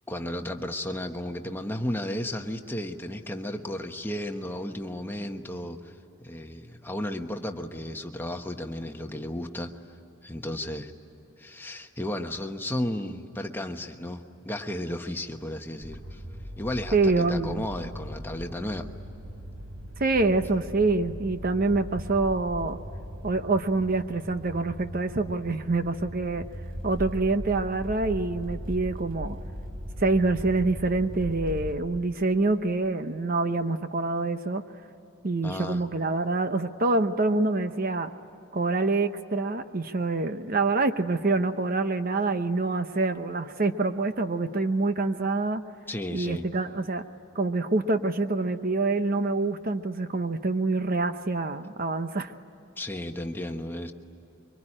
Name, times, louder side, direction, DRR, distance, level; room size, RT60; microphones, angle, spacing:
voice 1, 0.1-5.9 6.2-9.7 10.2-10.9 11.4-16.2 16.6-18.9 35.4-35.8 45.9-46.4 52.8-53.9, left 1 dB, 10° left, 5 dB, 1.1 m, -34 dB
sound 1, 15.8-31.7, equal, 70° right, 4.3 m, -39 dB
voice 2, 16.9-17.6 20.0-22.8 23.2-26.4 26.8-29.4 30.0-34.6 35.2-38.1 38.5-45.6 46.1-47.1 47.3-52.3, right 3 dB, 40° right, 9 dB, 0.8 m, -26 dB
24.5 x 24.5 x 10.0 m, 3.0 s
head